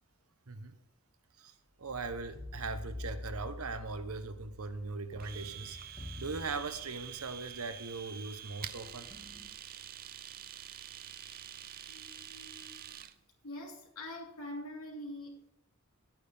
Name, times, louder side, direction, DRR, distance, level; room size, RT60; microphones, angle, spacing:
voice 1, 0.5-0.8 1.3-9.1, right 4 dB, 80° right, 10 dB, 1.0 m, -40 dB
sound 1, 1.8-9.5, left 1 dB, 30° left, 2.5 m, -47 dB
Domestic sounds home sounds, 5.2-13.1, right 10 dB, 45° right, 0.5 m, -47 dB
voice 2, 11.9-12.8 13.4-15.5, left 1 dB, 80° left, 0 dB, 2.8 m, -45 dB
10.5 x 9.0 x 3.5 m, 0.74 s
head